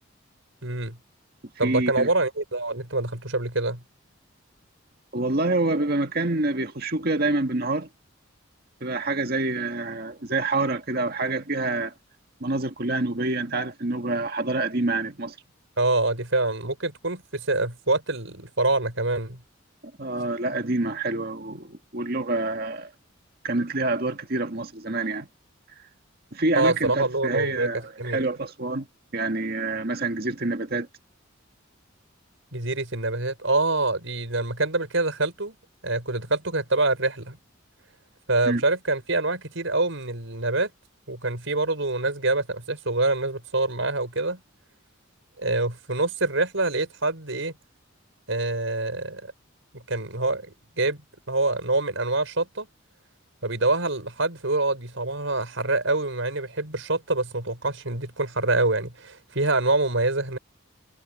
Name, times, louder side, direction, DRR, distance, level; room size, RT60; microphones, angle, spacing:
voice 1, 0.6-1.0 1.6-3.8 15.8-19.4 26.6-27.7 28.0-28.3 32.5-35.6 35.8-37.4 38.3-40.7 41.1-44.4 45.4-47.5 48.3-49.3 49.7-51.0 51.3-52.7 53.4-60.4, right 2 dB, 70° right, 5.2 m, -25 dB
voice 2, 1.6-2.1 5.1-7.9 8.8-11.9 12.4-15.4 20.0-22.9 23.4-25.3 26.3-28.9 29.1-30.9 38.4-38.6, right 2 dB, 50° right, 1.9 m, -27 dB
head